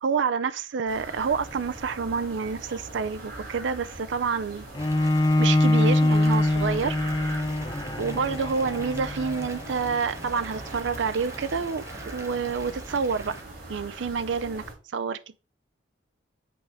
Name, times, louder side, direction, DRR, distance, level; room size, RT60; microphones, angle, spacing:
voice 1, 0.0-4.7 5.4-7.0 8.0-13.4 13.7-14.6 14.9-15.4, right 5 dB, 70° right, 0.4 m, -28 dB
sound 1, 0.9-14.7, right 2 dB, 50° right, 3.3 m, -41 dB
Bowed string instrument, 4.7-10.0, left 1 dB, 20° left, 0.4 m, -24 dB
Water tap faucet / Bathtub (filling or washing) / Fill (with liquid), 4.8-13.4, right 2 dB, 15° right, 0.7 m, -45 dB
7.8 x 4.8 x 4.5 m
head